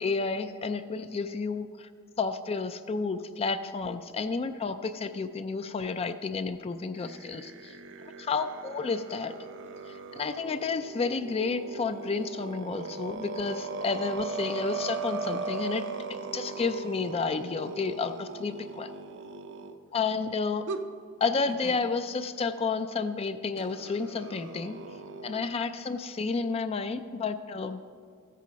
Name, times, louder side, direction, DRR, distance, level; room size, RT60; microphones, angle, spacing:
voice 1, 0.0-1.9 2.2-7.7 8.2-9.4 9.9-18.9 19.9-20.7 21.2-24.8 25.2-27.8, left 4 dB, 25° left, 10 dB, 0.3 m, -31 dB
sound 1, 6.9-19.7 20.7-20.8 21.5-21.8 23.6-25.4, right 4 dB, 55° right, 0.6 m, -38 dB
14.5 x 8.3 x 5.1 m, 2.2 s
head